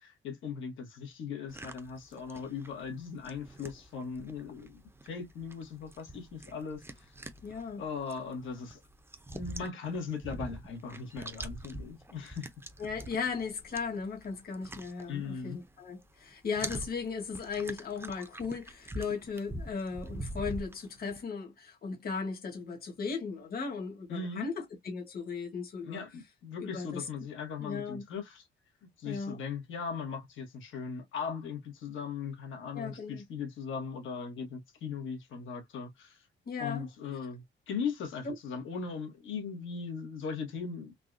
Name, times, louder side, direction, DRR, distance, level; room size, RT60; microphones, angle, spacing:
voice 1, 0.0-7.1 7.8-8.8 9.3-12.5 15.1-15.6 24.1-24.5 25.8-28.4 29.0-36.3 36.6-40.9, left 5 dB, 75° left, 1.5 m, -39 dB
sound 1, 1.5-15.7 16.0-21.2, right 1 dB, 10° right, 0.7 m, -45 dB
voice 2, 7.4-7.8 12.8-26.0 26.6-27.1 27.6-28.0 29.0-29.4 32.7-33.2 36.4-36.9 38.2-38.3, left 5 dB, 50° left, 1.4 m, -37 dB
3.9 x 2.4 x 2.5 m
cardioid pair, 90°, 20 cm